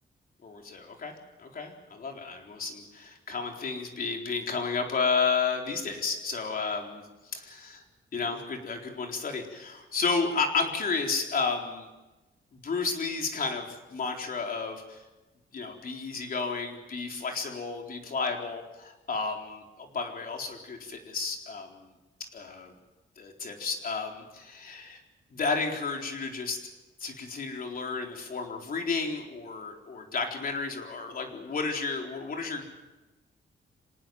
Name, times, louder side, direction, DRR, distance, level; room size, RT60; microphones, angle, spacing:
voice 1, 0.4-1.1 1.4-7.0 7.3-7.4 8.1-11.9 12.6-15.0 15.5-21.9 22.3-22.7 23.2-24.8 25.3-26.6 27.0-32.7, left 4 dB, 50° left, 2 dB, 4.1 m, -32 dB
26.5 x 18.5 x 7.9 m, 1.1 s
wide cardioid pair, 170°, 19 cm